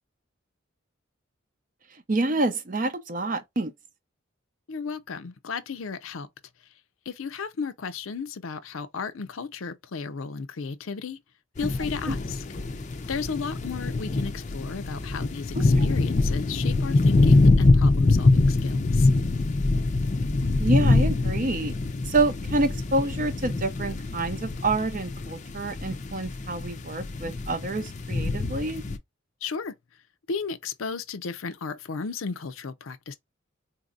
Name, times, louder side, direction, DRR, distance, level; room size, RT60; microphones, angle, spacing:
voice 1, 2.1-3.7 12.1-12.2 15.6-15.8 20.6-21.7 22.1-28.8, right 2 dB, 40° right, 0.6 m, -27 dB
voice 2, 4.7-6.3 7.1-11.2 11.6-12.4 13.1-19.1 29.4-29.7 30.3-33.2, left 5 dB, 85° left, 0.6 m, -34 dB
sound 1, 11.6-29.0, left 2 dB, 35° left, 0.5 m, -24 dB
4.0 x 2.7 x 2.4 m
head